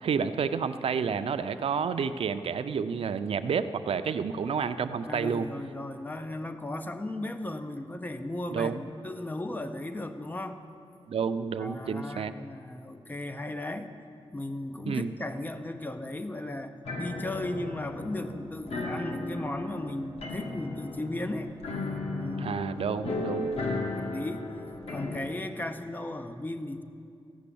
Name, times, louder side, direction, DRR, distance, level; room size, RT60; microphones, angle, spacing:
voice 1, 0.0-5.5 8.5-8.8 11.1-12.3 14.9-15.1 22.4-23.5, right 6 dB, 70° right, 11 dB, 0.5 m, -30 dB
voice 2, 5.0-10.6 11.6-13.9 14.3-21.5 22.1-22.5 24.0-24.4 24.9-26.8, left 1 dB, 20° left, 8 dB, 0.6 m, -36 dB
sound 1, 16.8-25.2, left 2 dB, 85° left, 1.4 m, -35 dB
14.0 x 6.1 x 8.5 m, 2.5 s
wide cardioid pair, 145°, 10 cm